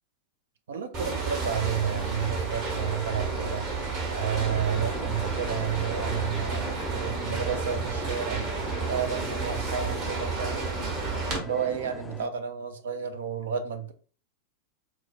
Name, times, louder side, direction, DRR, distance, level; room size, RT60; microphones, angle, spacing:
voice 1, 0.7-3.7 4.1-8.4 8.9-10.6 11.4-13.9, right 8 dB, 60° right, 0.4 m, -31 dB
sound 1, 0.9-11.4, right 4 dB, 40° right, 1.1 m, -31 dB
sound 2, 4.4-12.3, left 2 dB, 10° left, 0.4 m, -42 dB
4.4 x 2.0 x 2.3 m
figure-of-eight pair, 90°, 0 cm